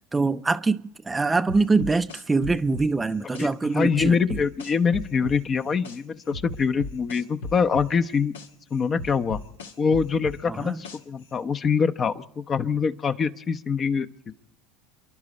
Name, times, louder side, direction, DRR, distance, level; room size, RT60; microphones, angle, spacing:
voice 1, 0.1-4.2 10.5-10.8, right 3 dB, 15° right, 0.5 m, -24 dB
sound 1, 1.5-3.5 4.0-6.0 6.3-8.5 9.0-11.2, left 2 dB, 80° left, 1.3 m, -36 dB
voice 2, 3.3-8.3 8.7-9.4 9.8-14.3, left 6 dB, 35° left, 0.8 m, -24 dB
29.5 x 11.5 x 4.2 m
hypercardioid pair, 75°, 0 cm